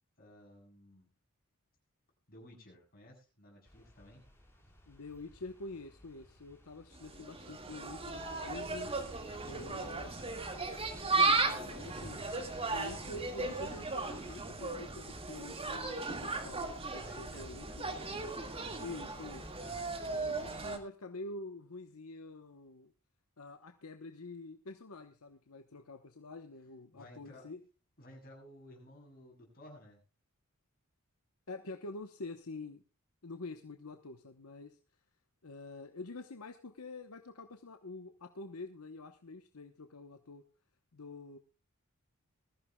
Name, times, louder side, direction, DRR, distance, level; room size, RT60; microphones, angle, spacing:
voice 1, 0.2-1.1 2.3-4.2 9.3-10.4 17.0-18.1 19.6-20.7 26.9-27.5 28.0-30.0, left 1 dB, 45° left, -1 dB, 7.5 m, -56 dB
sound 1, 3.6-14.4, equal, 10° left, 4.4 m, -58 dB
voice 2, 4.9-8.9 9.4-10.1 11.1-12.2 12.7-17.9 18.8-19.5 20.1-22.9 23.4-27.6 31.5-32.8 33.2-34.8 35.4-40.4 40.9-41.4, left 2 dB, 75° left, 7 dB, 1.0 m, -47 dB
Insect, 6.9-20.8, right 3 dB, 25° right, 1.9 m, -36 dB
21.0 x 14.5 x 2.3 m, 0.32 s
head